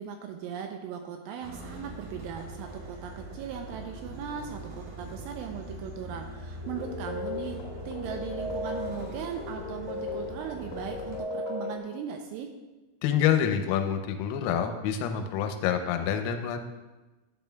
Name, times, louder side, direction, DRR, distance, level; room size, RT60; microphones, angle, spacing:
voice 1, 0.0-7.6 7.9-12.5, right 7 dB, 85° right, 4 dB, 2.8 m, -38 dB
sound 1, 1.4-11.2, right 1 dB, 70° right, 1.9 m, -42 dB
sound 2, 6.6-11.8, left 3 dB, 70° left, 4.3 m, -36 dB
voice 2, 13.0-16.6, left 9 dB, 90° left, 6 dB, 3.5 m, -27 dB
13.0 x 8.7 x 2.3 m, 1.1 s
omnidirectional pair, 6.0 m